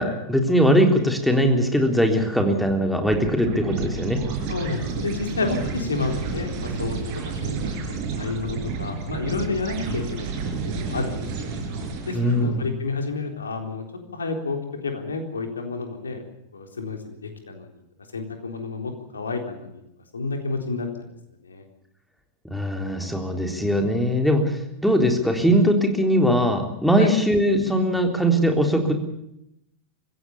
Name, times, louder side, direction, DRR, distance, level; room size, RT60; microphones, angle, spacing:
voice 1, 0.0-4.2 12.1-12.7 22.4-28.9, equal, ahead, 4 dB, 3.7 m, -21 dB
sound 1, 3.0-12.4, right 4 dB, 45° right, 6.1 m, -30 dB
voice 2, 4.5-7.6 8.1-10.3 10.6-11.5 12.1-13.8 14.1-14.6 14.8-16.2 16.5-17.7 18.1-19.8 20.1-21.1 21.4-21.6 27.0-27.1, left 4 dB, 75° left, 5 dB, 3.8 m, -30 dB
25.0 x 16.0 x 7.1 m, 0.81 s
figure-of-eight pair, 90°, 0 cm